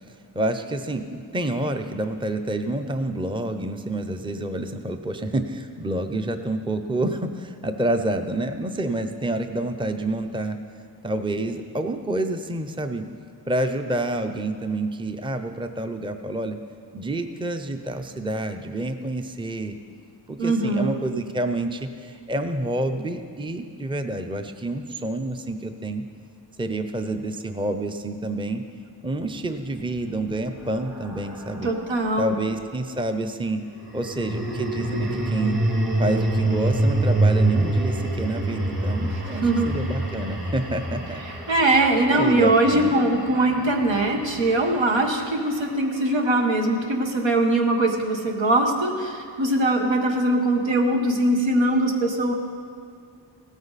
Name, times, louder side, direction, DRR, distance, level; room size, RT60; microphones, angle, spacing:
voice 1, 0.3-10.6 11.0-13.0 13.5-16.6 16.9-19.8 20.3-26.0 26.6-28.6 29.0-31.7 32.2-33.6 33.9-35.6 36.0-41.2 41.9-42.9, right 1 dB, 10° right, 7 dB, 0.6 m, -28 dB
voice 2, 20.4-20.9 31.6-32.3 39.4-39.8 41.5-52.3, right 2 dB, 85° right, 2 dB, 1.6 m, -21 dB
sound 1, 29.6-32.1 33.8-46.0, right 1 dB, 50° right, 2.5 m, -27 dB
16.5 x 13.0 x 4.1 m, 2.3 s
wide cardioid pair, 105°, 44 cm